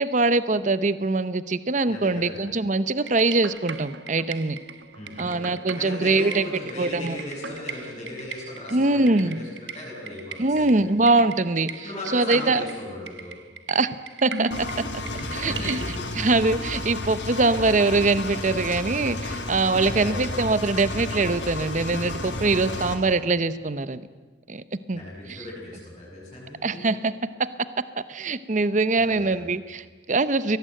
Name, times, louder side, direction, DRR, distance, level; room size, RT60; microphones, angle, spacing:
voice 1, 0.0-4.6 5.2-6.4 6.8-7.2 8.7-9.4 10.4-11.8 12.1-12.6 13.7-13.9 14.2-14.7 15.3-15.8 16.1-24.1 24.5-25.0 26.6-27.5 28.0-30.6, right 3 dB, 45° right, 14 dB, 0.8 m, -23 dB
voice 2, 1.9-2.4 4.9-5.4 5.8-10.9 11.8-13.3 15.2-16.0 19.8-20.3 24.9-26.9 29.0-29.4, left 1 dB, 25° left, -9 dB, 7.5 m, -37 dB
sound 1, 2.4-10.5 10.8-15.7, left 2 dB, 50° left, 2.5 m, -53 dB
sound 2, 3.1-16.0, right 4 dB, 85° right, 1.3 m, -39 dB
Engine, 14.5-22.9, left 2 dB, 80° left, 3.2 m, -32 dB
23.0 x 18.5 x 9.0 m, 1.3 s
head